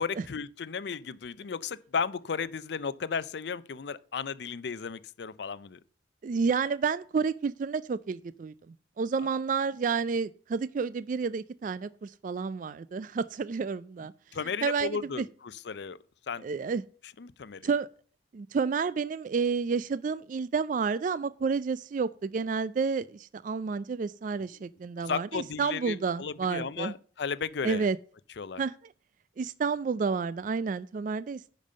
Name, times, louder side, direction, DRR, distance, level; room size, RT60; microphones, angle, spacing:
voice 1, 0.0-5.8 14.3-16.0 16.3-16.5 17.2-17.6 25.0-27.9 28.4-28.6, left 5 dB, 60° left, 0.5 m, -34 dB
voice 2, 6.2-8.5 9.0-14.1 14.6-15.3 16.4-16.8 17.6-17.9 18.3-26.9 27.6-28.0 28.6-28.7 29.4-31.5, right 5 dB, 45° right, 0.3 m, -30 dB
10.0 x 5.3 x 5.4 m
head